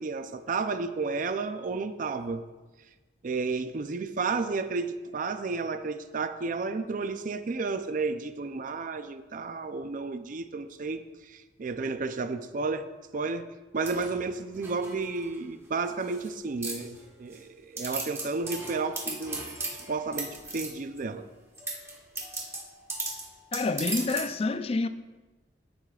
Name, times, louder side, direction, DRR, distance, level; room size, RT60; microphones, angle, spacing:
voice 1, 0.0-2.4 3.2-12.9 13.1-13.5 13.7-19.6 19.9-21.3, right 4 dB, 50° right, 0.5 m, -32 dB
sound 1, 13.8-15.4 15.9-16.3 16.6-17.4 17.8-21.0 21.6-24.4, right 2 dB, 15° right, 1.3 m, -37 dB
voice 2, 23.5-24.9, left 3 dB, 35° left, 0.4 m, -28 dB
14.5 x 8.1 x 2.4 m
head